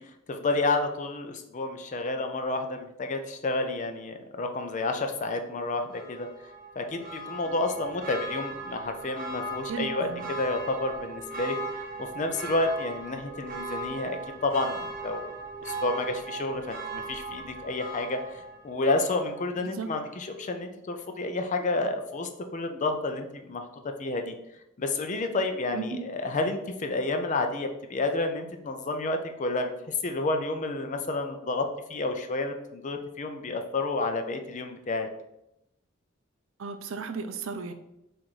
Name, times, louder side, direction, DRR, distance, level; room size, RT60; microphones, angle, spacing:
voice 1, 0.3-6.3 6.8-14.8 15.0-15.3 15.6-23.7 24.0-24.3 24.8-35.1, left 2 dB, 35° left, 6 dB, 0.4 m, -30 dB
Church bell, 5.9-19.6 19.9-20.0, right 2 dB, 45° right, 0.9 m, -38 dB
voice 2, 9.7-10.3 19.6-19.9 25.7-26.0 36.6-37.7, right 4 dB, 70° right, 8 dB, 0.5 m, -35 dB
4.0 x 2.5 x 4.5 m, 0.85 s
head